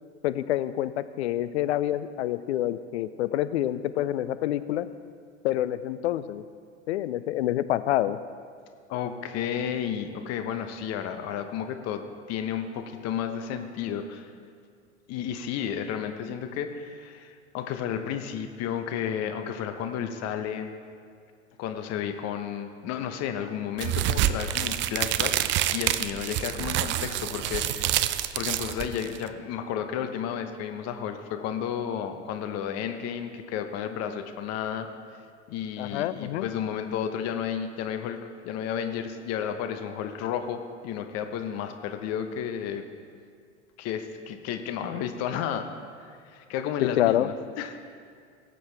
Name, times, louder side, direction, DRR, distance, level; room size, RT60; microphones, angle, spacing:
voice 1, 0.2-4.9 5.4-6.4 6.9-8.2 35.8-36.5 47.0-47.3, left 13 dB, 65° left, 14 dB, 0.6 m, -27 dB
voice 2, 8.9-14.3 15.1-20.7 21.6-28.1 28.3-34.9 35.5-42.8 43.8-45.7 46.0-47.8, left 8 dB, 45° left, 7 dB, 1.0 m, -32 dB
sound 1, 23.8-29.3, right 12 dB, 30° right, 0.5 m, -27 dB
18.0 x 7.9 x 3.4 m, 2.2 s
figure-of-eight pair, 80°, 36 cm